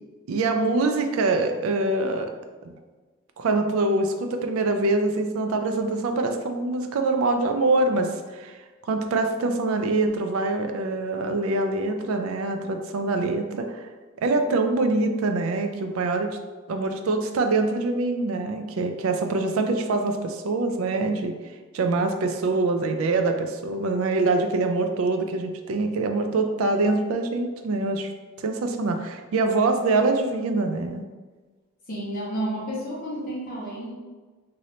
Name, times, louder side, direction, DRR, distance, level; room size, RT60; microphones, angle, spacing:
voice 1, 0.3-2.3 3.4-13.9 14.2-16.4 16.7-28.1 28.4-31.0, right 3 dB, 80° right, 6 dB, 0.4 m, -24 dB
voice 2, 31.9-33.9, right 1 dB, 45° left, -6 dB, 0.7 m, -31 dB
2.8 x 2.7 x 3.1 m, 1.3 s
head